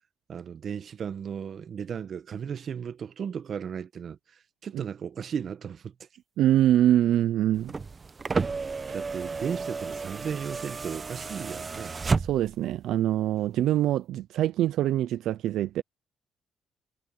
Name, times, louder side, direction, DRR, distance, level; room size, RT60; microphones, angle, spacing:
voice 1, 0.3-5.9 8.5-8.6 8.9-11.9, right 7 dB, 55° right, 1.2 m, -35 dB
voice 2, 6.4-7.7 12.2-15.8, right 12 dB, 80° right, 0.5 m, -24 dB
sound 1, 7.5-12.7 13.9-14.0, right 4 dB, 30° right, 0.9 m, -32 dB
cardioid pair, 90°, 0 cm